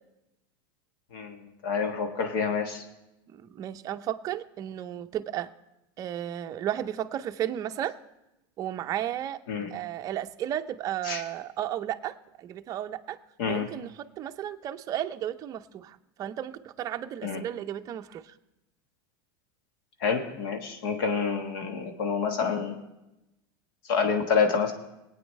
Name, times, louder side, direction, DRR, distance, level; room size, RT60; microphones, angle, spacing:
voice 1, 1.1-2.8 9.5-9.7 11.0-11.2 13.4-13.7 17.2-17.4 20.0-22.8 23.9-24.7, left 5 dB, 70° left, 5 dB, 1.3 m, -28 dB
voice 2, 3.4-5.5 6.0-7.9 8.6-9.4 9.7-13.2 13.5-13.9 14.2-18.2, right 11 dB, 30° right, 7 dB, 0.5 m, -33 dB
20.5 x 8.9 x 3.2 m, 0.94 s
supercardioid pair, 145°, 12 cm